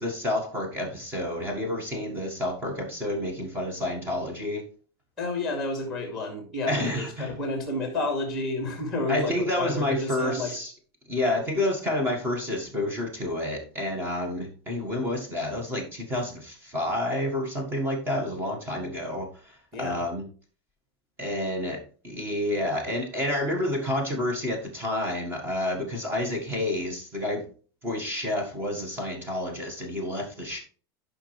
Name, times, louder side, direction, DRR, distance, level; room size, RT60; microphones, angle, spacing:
voice 1, 0.0-4.7 6.7-7.3 9.1-10.7 11.1-20.2 21.2-27.5 27.8-30.6, left 1 dB, 15° right, 2 dB, 1.5 m, -29 dB
voice 2, 5.2-10.5 11.2-11.4 19.7-20.0, left 2 dB, ahead, 3 dB, 2.0 m, -31 dB
11.5 x 5.2 x 3.3 m, 0.41 s
supercardioid pair, 170°, 13 cm